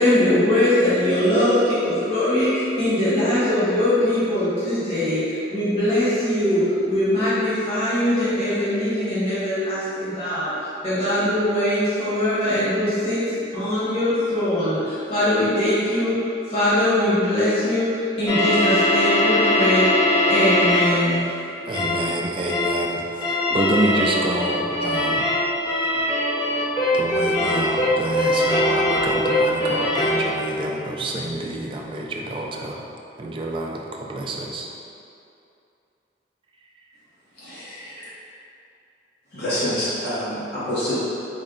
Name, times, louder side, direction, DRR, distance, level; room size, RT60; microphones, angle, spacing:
voice 1, 0.0-10.5 10.8-13.2 13.5-17.9 18.2-19.9 20.3-21.2, left 1 dB, 35° left, -13 dB, 1.3 m, -21 dB
sound 1, 18.3-21.0 21.7-22.1 22.5-22.8 23.2-30.3, left 1 dB, 20° left, 0.6 m, -21 dB
voice 2, 21.6-25.3 26.9-32.8 33.2-34.7, right 1 dB, 30° right, -1 dB, 0.3 m, -27 dB
voice 3, 37.4-38.1 39.3-41.0, equal, 65° left, -10 dB, 0.9 m, -27 dB
4.4 x 2.1 x 3.7 m, 2.6 s
head